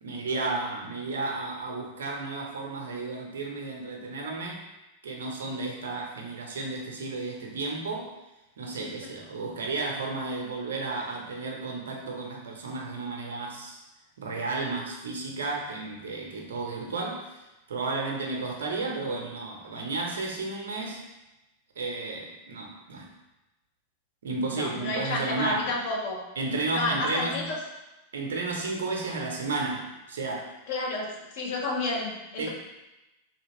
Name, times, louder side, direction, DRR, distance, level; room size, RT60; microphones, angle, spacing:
voice 1, 0.0-4.6 5.0-8.1 8.6-13.8 14.2-17.4 17.7-21.0 21.8-23.1 24.2-25.7 26.4-27.5 28.1-30.5 32.4-32.5, right 3 dB, 65° right, 0 dB, 0.6 m, -33 dB
voice 2, 24.5-26.2 26.7-27.5 30.7-31.1 31.3-32.5, left 2 dB, 50° left, -1 dB, 0.7 m, -30 dB
3.2 x 2.8 x 2.9 m, 0.99 s
figure-of-eight pair, 90°, 0 cm